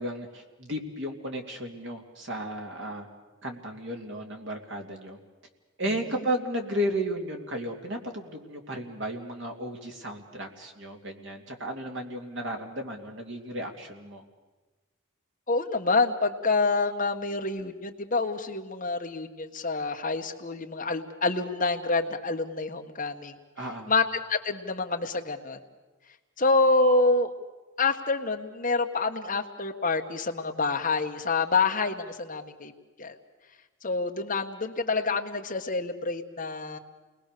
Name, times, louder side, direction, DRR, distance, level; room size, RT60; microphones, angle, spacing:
voice 1, 0.0-3.1 3.4-5.2 5.8-14.2 23.6-23.9, equal, 60° right, 3 dB, 2.8 m, -34 dB
voice 2, 15.5-23.3 23.9-24.0 24.3-25.6 26.4-27.3 27.8-32.7 33.0-33.1 33.8-36.8, left 3 dB, 40° left, 4 dB, 1.4 m, -27 dB
28.5 x 20.5 x 6.8 m, 1.2 s
head